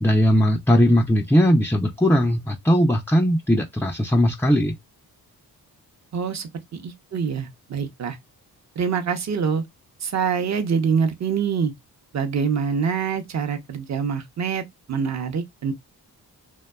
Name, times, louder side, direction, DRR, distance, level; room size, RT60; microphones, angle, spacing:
voice 1, 0.0-4.8, equal, 5° left, 0.3 m, -19 dB
voice 2, 6.1-8.2 8.8-9.6 10.0-11.7 12.1-14.6 14.9-15.7, right 6 dB, 45° right, 0.7 m, -25 dB
2.6 x 2.2 x 2.2 m
cardioid pair, 60°, 40 cm